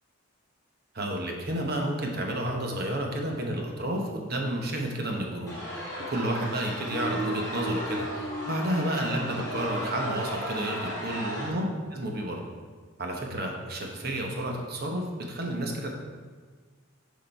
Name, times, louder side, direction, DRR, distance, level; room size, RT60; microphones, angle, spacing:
voice 1, 0.9-11.6 11.9-12.4 13.0-15.9, right 1 dB, 45° right, 1 dB, 1.0 m, -31 dB
sound 1, 5.5-11.5, equal, 15° left, 1.9 m, -34 dB
6.5 x 5.2 x 4.5 m, 1.5 s
head